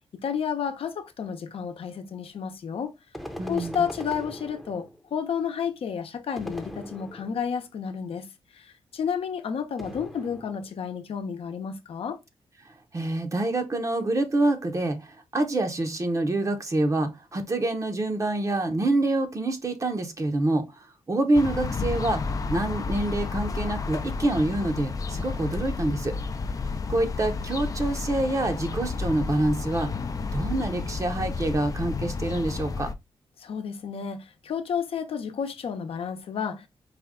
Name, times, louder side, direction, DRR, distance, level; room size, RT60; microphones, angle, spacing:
voice 1, 0.2-2.9 3.5-8.3 8.5-12.2 33.4-36.7, left 7 dB, 70° left, 0.8 m, -31 dB
sound 1, 3.1-5.1 6.4-7.6 9.8-10.8, equal, ahead, 0.7 m, -40 dB
voice 2, 3.4-3.9 12.9-22.2 22.5-26.2 26.9-29.9 30.3-32.9, right 2 dB, 30° right, 0.8 m, -26 dB
sound 2, 21.3-32.9, left 4 dB, 35° left, 0.5 m, -31 dB
5.0 x 2.3 x 3.6 m
cardioid pair, 95°, 10 cm